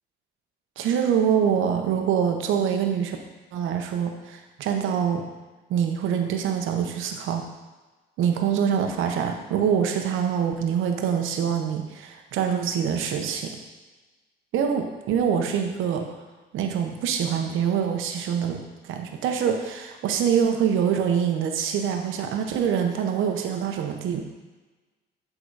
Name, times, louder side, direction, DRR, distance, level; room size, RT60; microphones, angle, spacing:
voice 1, 0.8-3.2 3.5-5.2 5.7-7.4 8.2-13.5 14.5-16.1 16.5-24.2, right 8 dB, 85° right, 4 dB, 0.9 m, -25 dB
8.6 x 3.9 x 4.7 m, 1.2 s
cardioid pair, 90°, 20 cm